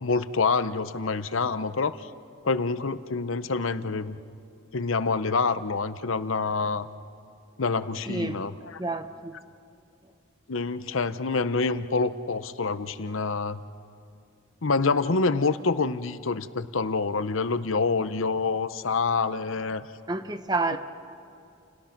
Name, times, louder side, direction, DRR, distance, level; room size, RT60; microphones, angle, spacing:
voice 1, 0.0-2.1 2.4-4.2 4.7-6.9 7.6-8.5 10.5-13.6 14.6-19.8, left 4 dB, 80° left, 0.8 m, -26 dB
voice 2, 8.1-8.5 8.8-9.4 20.1-20.8, right 3 dB, 20° right, 0.9 m, -29 dB
30.0 x 29.5 x 6.0 m
head